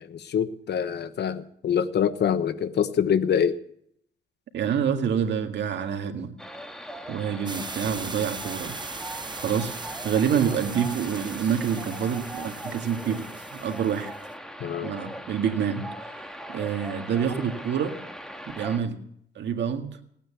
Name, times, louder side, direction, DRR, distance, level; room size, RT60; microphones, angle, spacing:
voice 1, 0.0-3.6 14.6-14.9, left 8 dB, 60° left, 12 dB, 1.1 m, -25 dB
voice 2, 4.5-6.4 7.1-8.8 9.4-14.1 14.8-17.9 18.6-19.0 19.4-20.0, right 7 dB, 65° right, 5 dB, 2.0 m, -27 dB
sound 1, 6.4-18.8, equal, 5° left, 1.9 m, -40 dB
sound 2, 7.5-14.3, right 4 dB, 20° right, 1.0 m, -39 dB
18.0 x 9.3 x 7.3 m, 0.69 s
cardioid pair, 90°, 20 cm